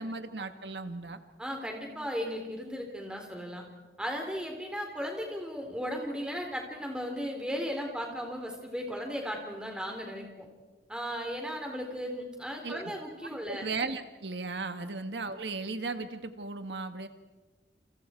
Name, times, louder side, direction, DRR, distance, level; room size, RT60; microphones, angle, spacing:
voice 1, 0.0-1.2 12.6-12.9 13.3-17.1, right 3 dB, 80° right, 8 dB, 1.7 m, -36 dB
voice 2, 1.4-3.7 4.0-10.5 10.9-13.7 14.8-14.9, equal, 5° right, 2 dB, 4.0 m, -36 dB
29.5 x 28.0 x 4.6 m, 1.2 s
head